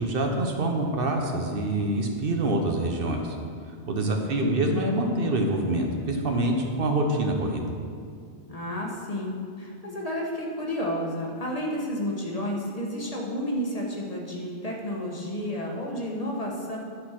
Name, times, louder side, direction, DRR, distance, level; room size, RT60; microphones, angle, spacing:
voice 1, 0.0-3.4 3.9-7.7, right 1 dB, 65° right, 2 dB, 1.0 m, -26 dB
voice 2, 4.0-4.7 8.5-16.8, equal, 35° left, -2 dB, 1.2 m, -31 dB
10.0 x 4.3 x 5.8 m, 2.2 s
omnidirectional pair, 1.1 m